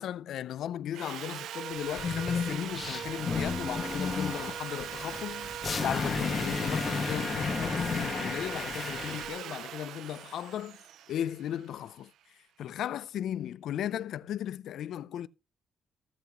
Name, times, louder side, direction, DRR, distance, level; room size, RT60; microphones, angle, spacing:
voice 1, 0.0-5.5 5.8-10.8 11.1-12.1 12.6-15.3, left 11 dB, 80° left, 0.4 m, -36 dB
Sawing, 0.9-12.0, right 10 dB, 85° right, 0.4 m, -40 dB
sound 1, 1.8-9.3, left 5 dB, 35° left, 1.2 m, -33 dB
14.0 x 8.0 x 3.0 m
cardioid pair, 120°, 0 cm